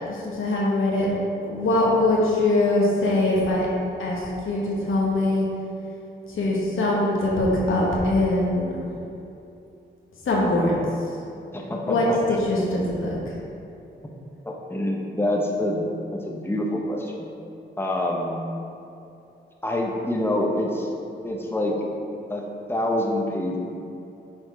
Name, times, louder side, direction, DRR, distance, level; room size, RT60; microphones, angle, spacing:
voice 1, 0.0-1.1 1.4-3.7 4.0-5.5 6.3-8.8 10.2-10.7 11.0-11.1 11.9-12.1 12.4-13.4, left 2 dB, 85° left, -4 dB, 1.2 m, -22 dB
voice 2, 11.5-12.4 14.4-17.3 17.8-18.5 19.6-20.9 21.2-21.8 22.3-23.6, left 1 dB, 10° left, -1 dB, 0.9 m, -26 dB
6.4 x 3.5 x 4.6 m, 2.7 s
cardioid pair, 55°, 20 cm